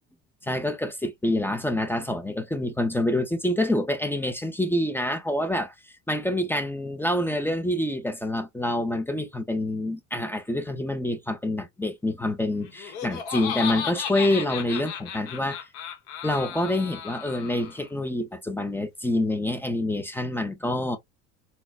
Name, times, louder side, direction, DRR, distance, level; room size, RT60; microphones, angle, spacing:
voice 1, 0.4-5.7 6.1-15.6 16.2-21.0, left 1 dB, 5° left, 0.4 m, -27 dB
Laughter, 12.6-17.9, left 9 dB, 75° left, 1.2 m, -34 dB
4.2 x 2.0 x 2.2 m
supercardioid pair, 115°, 36 cm